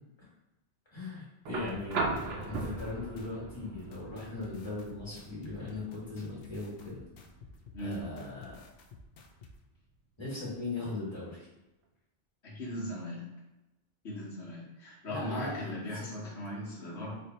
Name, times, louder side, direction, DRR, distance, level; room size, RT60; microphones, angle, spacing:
voice 1, 0.9-7.0 7.8-8.6 10.2-11.5 15.1-16.1, left 2 dB, 25° left, -7 dB, 1.6 m, -39 dB
sound 1, 1.5-9.5 10.9-11.0, right 3 dB, 70° right, 0.8 m, -40 dB
sound 2, 1.7-9.5, left 4 dB, 65° left, 0.7 m, -52 dB
voice 2, 12.4-13.2 14.0-17.2, left 1 dB, 80° left, -5 dB, 1.4 m, -38 dB
3.3 x 2.7 x 4.1 m, 0.98 s
omnidirectional pair, 1.1 m